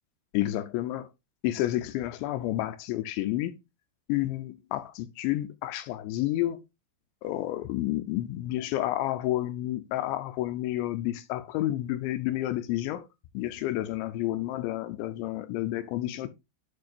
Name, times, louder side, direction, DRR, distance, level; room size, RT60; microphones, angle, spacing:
voice 1, 0.3-1.1 1.4-3.5 4.1-6.6 7.2-13.1 13.3-16.3, left 15 dB, 80° left, 2.8 m, -30 dB
11.0 x 4.7 x 2.5 m
omnidirectional pair, 5.5 m